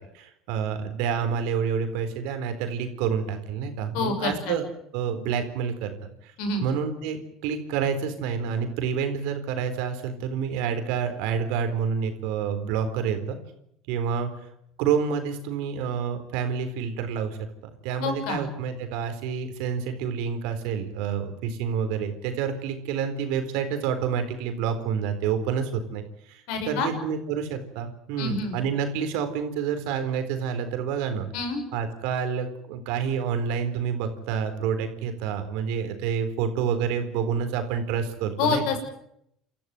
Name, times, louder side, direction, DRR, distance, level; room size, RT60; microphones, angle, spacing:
voice 1, 0.1-4.7 4.9-6.3 6.6-13.4 13.9-14.3 14.8-17.4 17.8-31.3 31.7-38.6, right 7 dB, 75° right, 8 dB, 4.0 m, -28 dB
voice 2, 3.9-4.5 6.4-6.6 18.0-18.5 26.5-26.9 28.2-28.6 31.3-31.6 38.4-38.8, left 4 dB, 75° left, 6 dB, 6.2 m, -27 dB
29.0 x 13.5 x 9.3 m, 0.76 s
supercardioid pair, 85°, 0 cm